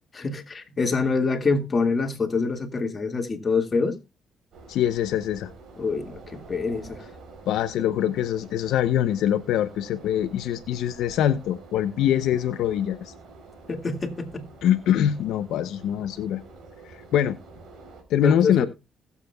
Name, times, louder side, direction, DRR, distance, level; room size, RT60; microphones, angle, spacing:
voice 1, 0.1-4.0 5.8-7.0 13.7-14.5 18.2-18.7, left 4 dB, 35° left, 1.9 m, -26 dB
sound 1, 4.5-18.0, right 3 dB, 70° right, 3.5 m, -47 dB
voice 2, 4.7-5.5 7.5-13.1 14.6-16.4 16.8-17.4 18.1-18.6, left 10 dB, 85° left, 0.6 m, -24 dB
20.0 x 7.3 x 2.3 m
cardioid pair, 90°, 0 cm